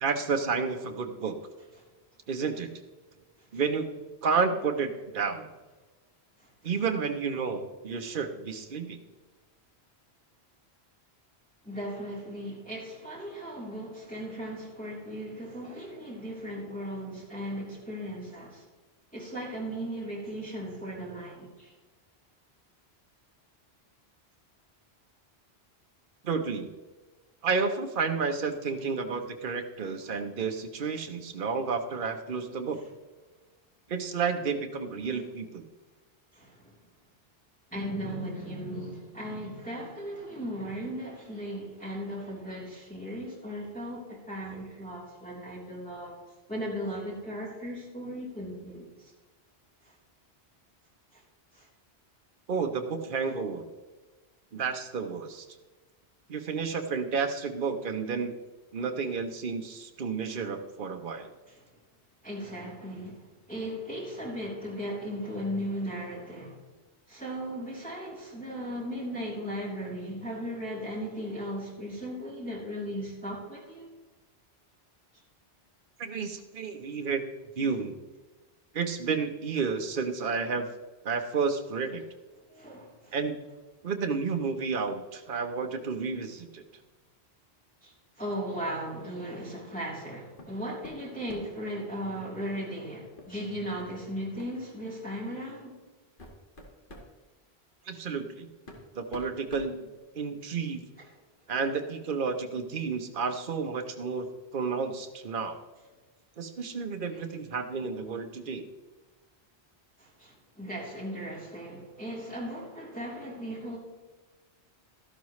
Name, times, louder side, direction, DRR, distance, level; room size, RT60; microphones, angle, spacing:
voice 1, 0.0-1.3 2.3-2.7 3.5-5.5 6.6-9.0 26.2-26.7 27.4-32.8 33.9-35.7 52.5-53.7 54.5-55.5 56.3-58.3 58.7-61.3 76.0-78.0 78.7-80.7 81.0-82.0 83.1-83.4 83.8-86.6 97.9-98.5 98.9-99.9 100.1-100.8 101.5-104.3 104.5-105.6 106.4-108.6, right 5 dB, 55° right, 5 dB, 1.1 m, -31 dB
voice 2, 11.6-18.6 19.1-21.7 30.1-30.2 36.3-36.8 37.7-46.2 46.5-49.1 49.8-49.9 51.1-51.2 51.5-51.7 61.5-61.7 62.2-66.6 67.1-73.9 82.5-83.2 87.8-95.7 101.0-101.1 110.0-113.8, equal, 10° left, -7 dB, 3.5 m, -37 dB
sound 1, 90.4-90.6 90.8-91.6 93.2-93.3 93.8-93.9 94.4-94.6 95.4-95.5 96.0-97.1 98.2-98.3 98.7-100.4, left 1 dB, 50° left, 2.1 m, -47 dB
13.0 x 12.0 x 3.2 m, 1.2 s
omnidirectional pair, 1.1 m